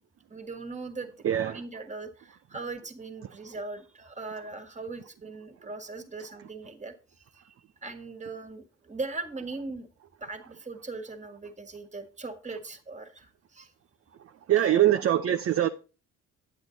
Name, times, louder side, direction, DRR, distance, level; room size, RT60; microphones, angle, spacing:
voice 1, 0.3-7.5 7.8-9.9 10.2-13.7 14.5-15.0, right 3 dB, 20° right, 1.8 m, -40 dB
voice 2, 1.2-1.6 14.5-15.7, right 12 dB, 45° right, 0.6 m, -23 dB
9.0 x 7.7 x 3.9 m
supercardioid pair, 70°, 32 cm